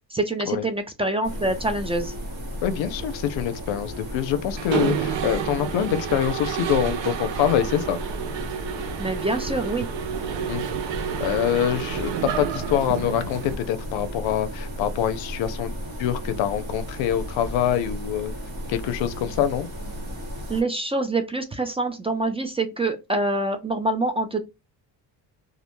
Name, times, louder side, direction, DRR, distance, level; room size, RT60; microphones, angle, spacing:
voice 1, 0.1-2.1 9.0-9.9 20.5-24.4, right 2 dB, 15° right, 0.3 m, -25 dB
sound 1, 1.2-20.6, equal, 55° right, 1.1 m, -35 dB
voice 2, 2.6-8.0 10.5-10.6 11.2-15.7 16.0-18.3 18.7-19.7, left 10 dB, 85° left, 0.5 m, -25 dB
Mechanisms, 4.6-13.5, right 8 dB, 80° right, 0.6 m, -30 dB
2.3 x 2.1 x 2.9 m
cardioid pair, 100°, 44 cm